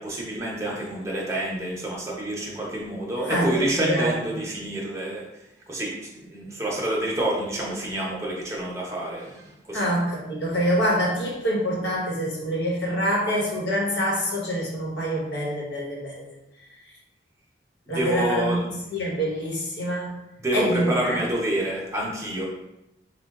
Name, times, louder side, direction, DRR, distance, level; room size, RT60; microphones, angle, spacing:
voice 1, 0.0-5.2 5.7-9.9 17.9-18.6 20.4-22.4, right 1 dB, 15° right, -4 dB, 0.8 m, -28 dB
voice 2, 3.2-4.4 9.7-16.3 17.9-20.2 20.5-21.2, equal, 75° left, -3 dB, 1.1 m, -26 dB
4.3 x 2.3 x 3.6 m, 0.92 s
head